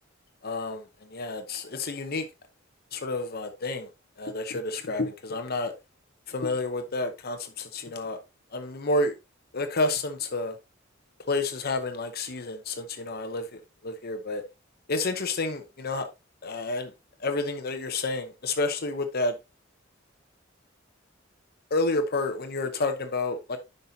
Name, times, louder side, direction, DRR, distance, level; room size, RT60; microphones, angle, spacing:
voice 1, 0.4-0.8 1.1-2.3 2.9-3.9 4.2-5.7 6.3-8.2 8.5-9.1 9.5-10.6 11.3-14.4 14.9-16.1 16.4-16.9 17.2-19.3 21.7-23.6, left 2 dB, 50° left, 0.8 m, -30 dB
10.0 x 5.4 x 2.7 m
head